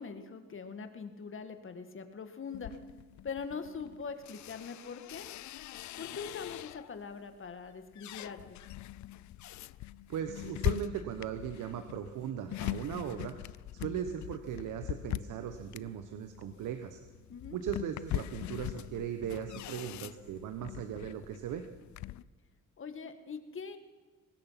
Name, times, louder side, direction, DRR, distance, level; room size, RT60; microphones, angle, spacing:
voice 1, 0.0-2.7 3.2-5.3 6.0-8.6 17.3-17.6 22.8-23.8, left 5 dB, 45° left, 8 dB, 2.0 m, -42 dB
sound 1, 2.5-7.0 7.5-22.2, left 15 dB, 70° left, 0.6 m, -41 dB
voice 2, 10.1-13.3 13.7-17.0 17.5-21.6, right 9 dB, 85° right, 8 dB, 1.3 m, -38 dB
23.5 x 19.5 x 5.9 m, 1.3 s
cardioid pair, 90°, 30 cm